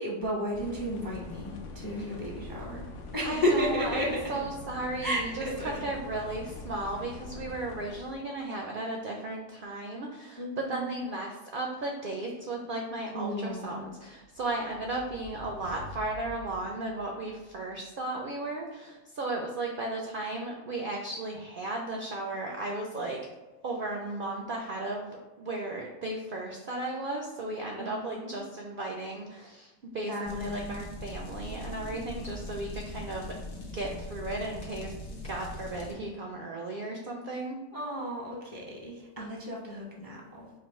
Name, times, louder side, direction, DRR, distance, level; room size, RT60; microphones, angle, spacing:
voice 1, 0.0-2.9 3.1-4.2 5.0-5.8 10.4-11.0 13.1-13.9 27.8-28.4 30.1-30.9 37.7-40.5, equal, 25° left, -3 dB, 0.4 m, -33 dB
sound 1, 0.5-8.1, left 3 dB, 65° left, 0.9 m, -44 dB
voice 2, 3.2-23.2 23.6-37.6, right 2 dB, 65° right, 1 dB, 0.5 m, -35 dB
sound 2, 13.9-17.7, right 1 dB, 90° right, 1.1 m, -48 dB
sound 3, 30.2-35.9, left 1 dB, 90° left, 1.3 m, -41 dB
4.9 x 2.0 x 4.1 m, 1.2 s
omnidirectional pair, 1.4 m